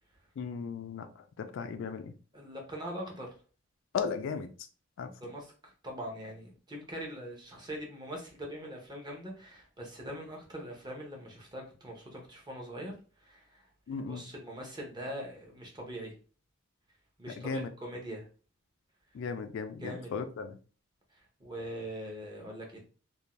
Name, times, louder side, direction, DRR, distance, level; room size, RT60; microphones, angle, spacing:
voice 1, 0.4-1.1 1.4-2.1 3.9-4.5 5.0-5.1 13.9-14.2 17.4-17.7 19.1-20.5, left 5 dB, 65° left, 0.3 m, -36 dB
voice 2, 2.3-3.3 5.2-12.9 13.2-13.7 14.0-16.1 17.2-18.3 19.8-20.2 21.1-22.9, equal, 20° right, 0.7 m, -42 dB
2.5 x 2.1 x 3.0 m
head